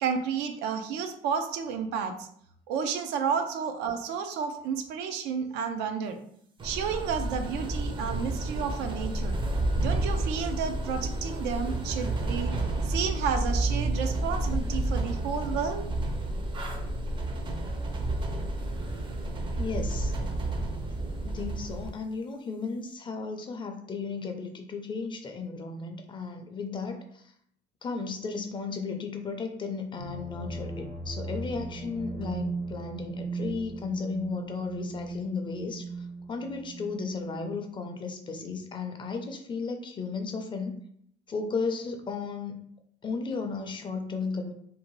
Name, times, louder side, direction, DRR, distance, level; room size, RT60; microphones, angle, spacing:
voice 1, 0.0-2.3 2.7-6.2 6.6-9.4 9.8-12.5 12.8-15.9, right 6 dB, 85° right, 6 dB, 0.4 m, -31 dB
sound 1, 6.6-21.9, right 1 dB, 30° right, 0.4 m, -30 dB
voice 2, 19.6-20.1 21.2-27.2 27.8-40.8 41.3-42.6 43.0-44.5, left 4 dB, 30° left, 5 dB, 0.4 m, -34 dB
sound 2, 30.0-37.7, right 3 dB, 55° right, 0.8 m, -38 dB
2.7 x 2.1 x 3.0 m, 0.68 s
cardioid pair, 110°, 17 cm